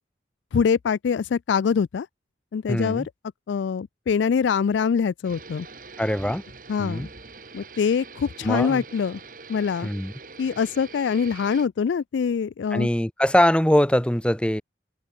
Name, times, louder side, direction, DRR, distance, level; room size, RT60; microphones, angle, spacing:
voice 1, 0.5-2.1 2.5-3.0 3.5-5.7 6.7-7.1 7.5-9.2 9.5-9.9 10.4-12.9, left 6 dB, 85° left, 0.4 m, -24 dB
voice 2, 2.7-3.1 6.0-6.4 6.8-7.1 8.4-8.8 9.8-10.1 12.7-14.6, equal, 5° left, 1.2 m, -22 dB
sound 1, 5.2-11.7, right 4 dB, 50° right, 4.8 m, -44 dB
head